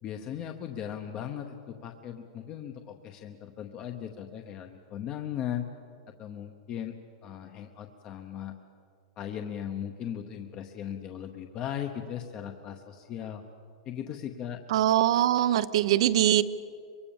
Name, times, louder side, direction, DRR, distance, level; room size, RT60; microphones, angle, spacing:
voice 1, 0.0-5.7 6.2-7.0 7.2-8.6 9.2-13.4 13.9-14.6, left 9 dB, 25° left, 5 dB, 0.9 m, -37 dB
voice 2, 14.7-16.4, right 12 dB, 60° right, 16 dB, 0.8 m, -22 dB
24.0 x 23.0 x 7.2 m, 2.3 s
supercardioid pair, 175°, 3 cm